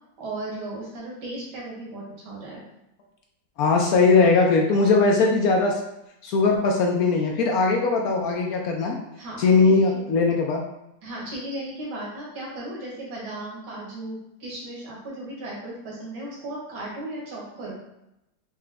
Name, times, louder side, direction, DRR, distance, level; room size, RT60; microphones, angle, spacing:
voice 1, 0.2-2.6 9.2-10.0 11.0-17.7, right 1 dB, 65° right, -5 dB, 1.8 m, -36 dB
voice 2, 3.6-5.8 6.2-9.0 9.4-10.6, left 4 dB, 75° left, 1 dB, 0.8 m, -20 dB
4.8 x 2.1 x 3.4 m, 0.86 s
omnidirectional pair, 2.0 m